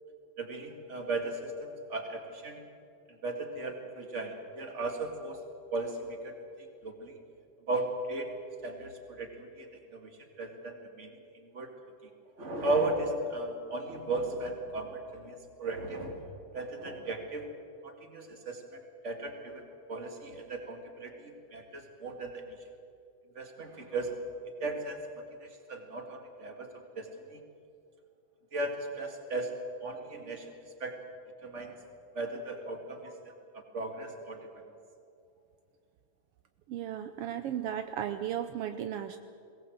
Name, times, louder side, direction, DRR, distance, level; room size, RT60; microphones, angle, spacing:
voice 1, 0.4-2.6 3.1-5.4 5.7-7.2 7.7-8.3 8.6-10.1 10.4-11.1 11.4-11.7 12.4-16.2 16.5-17.5 17.8-18.6 19.0-19.6 19.9-22.4 23.4-24.2 24.6-25.0 25.4-26.7 27.0-27.4 28.5-29.5 29.8-30.5 30.8-30.9 31.4-31.8 32.1-33.1 33.5-34.5, right 2 dB, 25° right, 4 dB, 2.1 m, -36 dB
voice 2, 36.7-39.2, right 10 dB, 80° right, 9 dB, 1.3 m, -35 dB
22.0 x 18.0 x 7.9 m, 2.5 s
omnidirectional pair, 3.4 m